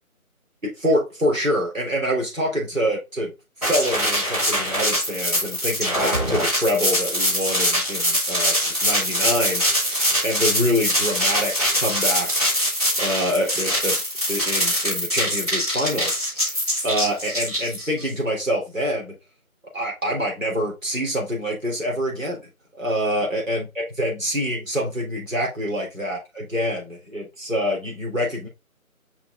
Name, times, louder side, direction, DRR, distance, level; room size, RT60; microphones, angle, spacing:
voice 1, 0.6-3.3 3.7-12.4 13.0-14.0 14.3-16.1 16.8-19.1 19.7-22.4 22.7-28.5, equal, 60° right, -2 dB, 3.6 m, -26 dB
sound 1, 3.6-18.1, equal, 25° right, 3.2 m, -23 dB
5.7 x 4.7 x 3.7 m, 0.25 s
figure-of-eight pair, 170°, 43 cm